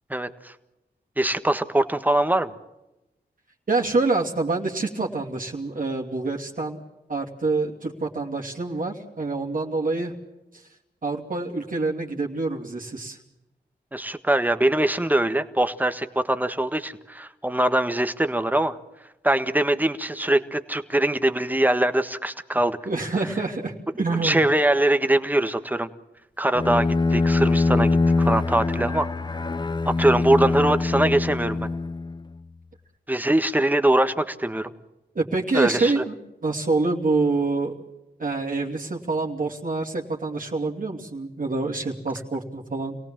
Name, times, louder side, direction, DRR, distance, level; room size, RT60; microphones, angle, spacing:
voice 1, 0.1-0.5 1.2-2.5 13.9-18.8 19.2-22.8 24.2-25.9 26.4-29.1 29.8-31.7 33.1-34.7 35.5-36.0, right 1 dB, 10° right, 9 dB, 1.5 m, -22 dB
voice 2, 3.7-6.8 7.1-10.1 11.0-13.2 22.9-24.4 35.1-36.1 36.4-37.7 38.2-43.0, right 3 dB, 50° right, 0 dB, 2.7 m, -26 dB
Bowed string instrument, 26.5-32.4, left 3 dB, 25° left, 0.7 m, -23 dB
27.0 x 17.5 x 7.5 m, 0.96 s
cardioid pair, 65°, 18 cm